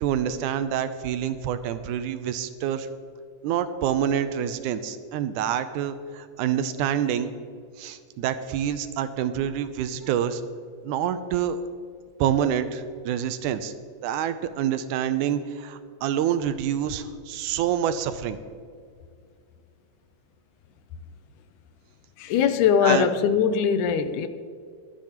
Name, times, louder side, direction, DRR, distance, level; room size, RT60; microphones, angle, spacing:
voice 1, 0.0-2.9 3.4-7.3 7.8-10.4 10.8-11.6 12.2-13.7 14.0-18.4 22.8-23.1, right 9 dB, 85° right, 2.0 m, -27 dB
voice 2, 22.2-24.3, left 7 dB, 80° left, 2.1 m, -21 dB
22.5 x 9.5 x 3.0 m
omnidirectional pair, 3.7 m